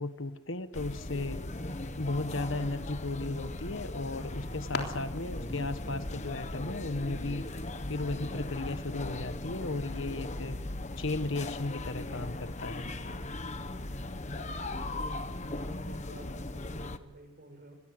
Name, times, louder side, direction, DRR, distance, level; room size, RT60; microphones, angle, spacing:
voice 1, 0.0-1.4 2.0-7.4 7.9-10.6 11.0-12.8, left 2 dB, 70° left, 10 dB, 1.5 m, -35 dB
sound 1, 0.7-17.0, left 2 dB, 35° left, 1.3 m, -38 dB
sound 2, 3.8-8.9, left 3 dB, 50° left, 3.6 m, -45 dB
voice 2, 15.2-17.8, right 1 dB, 50° right, 7 dB, 5.9 m, -52 dB
26.5 x 21.0 x 8.0 m, 1.0 s
head